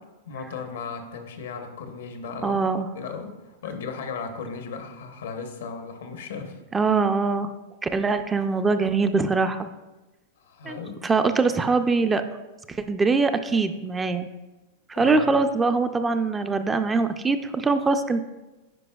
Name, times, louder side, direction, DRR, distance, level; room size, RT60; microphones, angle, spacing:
voice 1, 0.2-2.7 2.9-6.6 10.4-11.0 14.9-15.4, left 5 dB, 85° left, 6 dB, 0.9 m, -36 dB
voice 2, 2.4-2.9 6.7-7.5 7.8-9.7 10.7-12.2 12.7-14.3 14.9-18.2, right 4 dB, 15° right, 9 dB, 0.3 m, -23 dB
9.2 x 5.2 x 2.3 m, 1.1 s
hypercardioid pair, 125°, 0 cm